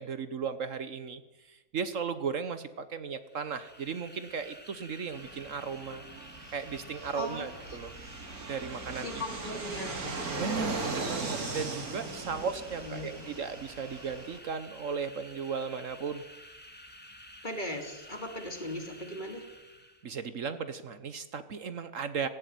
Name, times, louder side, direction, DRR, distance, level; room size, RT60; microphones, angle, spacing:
voice 1, 0.0-6.0 6.5-7.9 8.5-9.2 10.4-16.2 20.0-22.3, right 6 dB, 60° right, 12 dB, 1.3 m, -36 dB
sound 1, 3.2-20.1, equal, 5° left, 2.1 m, -51 dB
Fixed-wing aircraft airplane, 5.1-14.4, right 3 dB, 80° right, 3.0 m, -39 dB
voice 2, 7.1-7.8 8.9-10.0 12.3-12.5 12.8-13.3 17.4-19.4, left 1 dB, 30° left, 4 dB, 3.1 m, -39 dB
18.0 x 16.0 x 9.3 m, 1.1 s
omnidirectional pair, 1.6 m